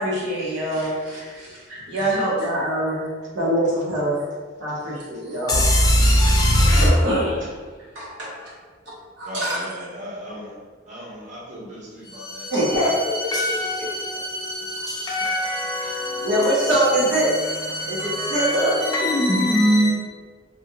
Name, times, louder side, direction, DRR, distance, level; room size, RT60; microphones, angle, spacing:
voice 1, 0.0-4.2 4.6-5.7 6.7-7.4 7.9-8.5 9.2-9.6 12.5-13.5 14.1-14.3 14.8-14.9 15.8-15.9 16.2-17.3 17.8-18.7, right 1 dB, 80° right, 1.0 m, -24 dB
voice 2, 5.5-6.9 12.0-19.9, equal, 20° left, 0.4 m, -22 dB
voice 3, 9.2-10.6 10.9-13.0, equal, 40° right, 0.7 m, -37 dB
2.5 x 2.3 x 2.8 m
head